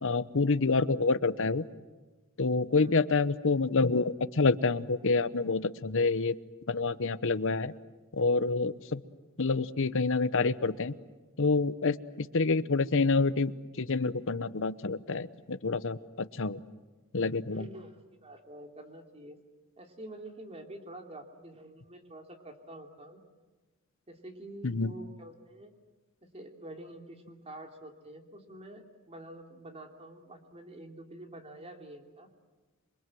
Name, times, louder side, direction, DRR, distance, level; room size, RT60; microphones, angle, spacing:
voice 1, 0.0-1.6 2.4-6.4 6.7-7.7 8.1-9.0 9.4-10.9 11.4-16.6 17.1-17.7 24.6-24.9, left 3 dB, 65° left, 14 dB, 0.9 m, -27 dB
voice 2, 17.5-18.0 18.2-19.4 19.8-23.2 24.1-25.7 26.3-32.3, right 1 dB, 30° right, 3 dB, 3.1 m, -47 dB
28.0 x 24.0 x 7.8 m, 1.2 s
head